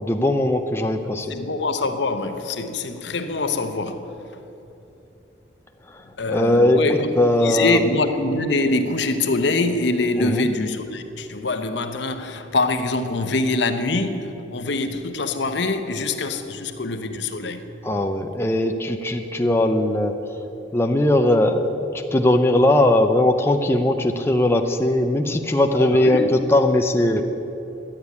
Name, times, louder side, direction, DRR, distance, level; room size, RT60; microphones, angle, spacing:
voice 1, 0.0-1.3 5.9-6.0 6.3-6.8 7.2-7.8 10.2-10.5 17.8-20.2 20.7-21.7 21.9-27.2, left 1 dB, 15° left, 0.5 m, -19 dB
voice 2, 1.3-4.1 6.2-7.1 7.4-17.7 25.7-26.3, left 3 dB, 65° left, 0.9 m, -24 dB
11.5 x 8.8 x 9.6 m
head